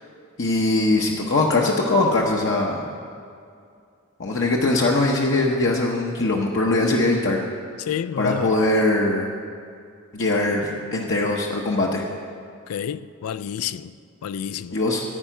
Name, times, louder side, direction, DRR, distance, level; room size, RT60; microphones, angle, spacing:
voice 1, 0.4-2.9 4.2-7.5 8.2-9.3 10.1-12.1 14.7-15.0, left 2 dB, 55° left, 0.8 m, -21 dB
voice 2, 7.9-8.6 12.7-13.9 14.2-14.8, left 8 dB, 90° left, 0.4 m, -29 dB
14.5 x 4.9 x 9.0 m
head